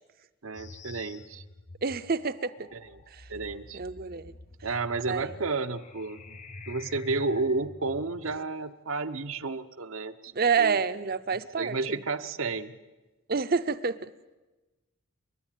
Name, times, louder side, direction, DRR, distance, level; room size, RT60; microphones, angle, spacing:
voice 1, 0.4-1.4 2.7-2.9 3.3-3.8 4.6-6.2 6.7-10.3 10.6-10.8 11.6-12.7, right 3 dB, 80° right, 9 dB, 1.0 m, -31 dB
sound 1, 0.5-8.4, left 2 dB, 35° left, 0.8 m, -47 dB
voice 2, 1.8-2.7 3.1-3.3 3.7-4.3 5.1-5.3 10.3-12.0 13.3-14.1, right 5 dB, 45° right, 11 dB, 0.7 m, -28 dB
29.0 x 12.0 x 9.2 m, 1.1 s
head